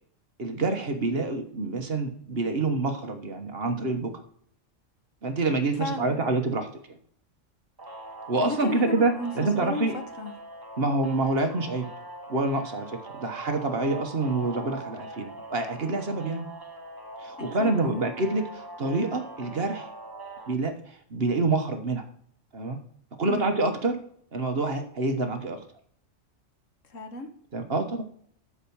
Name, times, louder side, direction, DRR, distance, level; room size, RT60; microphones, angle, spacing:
voice 1, 0.4-4.1 5.2-6.7 8.3-10.0 10.8-11.9 12.3-16.5 17.2-19.9 20.5-22.0 22.5-22.8 23.2-24.0 24.3-25.6 27.5-28.0, right 3 dB, 50° right, 5 dB, 1.5 m, -27 dB
voice 2, 5.8-6.3 8.4-10.3 17.4-18.1 23.3-23.5 26.9-27.3, left 2 dB, 85° left, 6 dB, 1.7 m, -35 dB
sound 1, 7.8-20.5, right 2 dB, 20° right, 1.0 m, -42 dB
13.0 x 5.0 x 7.1 m, 0.64 s
omnidirectional pair, 1.3 m